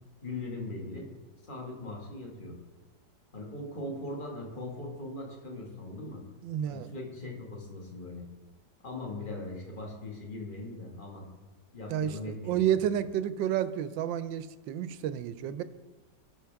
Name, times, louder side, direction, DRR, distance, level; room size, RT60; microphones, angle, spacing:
voice 1, 0.2-1.1 1.4-2.6 3.3-6.2 6.7-8.2 8.8-11.2 11.7-12.6 13.0-13.1, left 2 dB, 25° left, -1 dB, 1.9 m, -40 dB
voice 2, 6.4-6.9 11.9-12.2 12.4-15.6, right 10 dB, 80° right, 13 dB, 1.3 m, -30 dB
18.0 x 6.1 x 3.5 m, 1.1 s
omnidirectional pair, 2.1 m